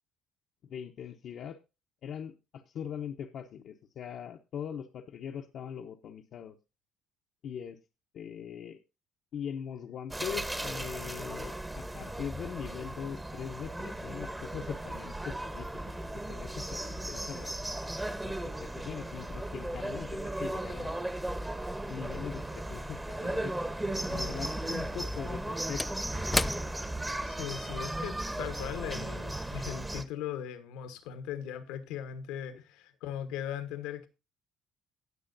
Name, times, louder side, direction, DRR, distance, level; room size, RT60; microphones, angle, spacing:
voice 1, 0.6-1.6 2.0-6.6 7.4-7.8 8.1-8.8 9.3-16.0 16.3-17.5 18.2-21.0 21.7-23.7 24.1-26.1, left 8 dB, 60° left, 0.9 m, -41 dB
sound 1, 10.1-30.0, right 1 dB, 15° right, 1.1 m, -36 dB
Slam / Wood, 24.9-29.6 29.9-30.1, left 2 dB, 15° left, 0.4 m, -37 dB
voice 2, 27.2-34.1, left 9 dB, 85° left, 1.3 m, -39 dB
18.5 x 6.3 x 2.7 m
supercardioid pair, 80°, 0 cm